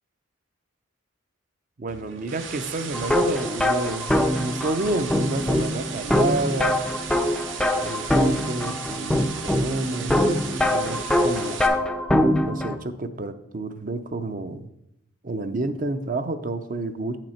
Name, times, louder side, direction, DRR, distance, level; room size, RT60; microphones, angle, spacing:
voice 1, 1.8-6.8 7.8-11.6 12.5-14.7 15.2-17.2, right 2 dB, 40° right, 10 dB, 0.5 m, -29 dB
sound 1, 1.9-11.7, right 6 dB, 70° right, 0.8 m, -36 dB
sound 2, 2.9-12.8, left 1 dB, 5° left, 0.4 m, -23 dB
8.6 x 6.0 x 4.3 m, 0.80 s
head